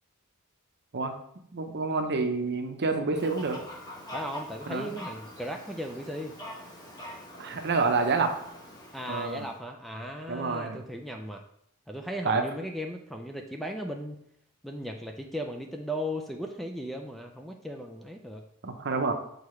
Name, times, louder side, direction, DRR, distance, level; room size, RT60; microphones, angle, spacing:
voice 1, 1.5-3.6 4.7-4.9 7.4-8.3 9.1-9.5 10.3-10.8 12.2-12.4 18.6-19.1, right 4 dB, 50° right, 5 dB, 0.7 m, -28 dB
Fowl, 3.1-9.6, equal, 20° left, 1.1 m, -44 dB
voice 2, 4.1-6.3 7.4-7.5 8.9-11.4 11.9-14.2 14.6-18.4, equal, ahead, 3 dB, 0.4 m, -37 dB
6.6 x 4.7 x 3.1 m, 0.71 s
head